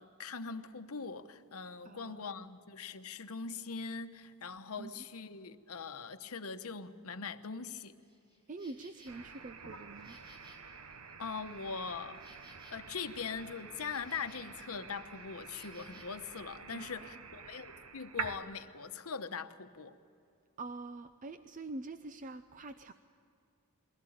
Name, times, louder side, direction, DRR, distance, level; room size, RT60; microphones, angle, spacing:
voice 1, 0.0-8.0 11.2-12.2 12.7-20.0, left 5 dB, 70° left, 1.0 m, -42 dB
voice 2, 1.8-2.3 4.8-5.0 8.5-10.2 16.7-17.1 20.6-22.9, right 3 dB, 35° right, 0.5 m, -45 dB
Insect, 8.0-16.0, right 1 dB, 20° right, 5.3 m, -62 dB
sound 1, 9.1-18.4, right 5 dB, 80° right, 1.2 m, -47 dB
22.5 x 16.5 x 8.7 m
head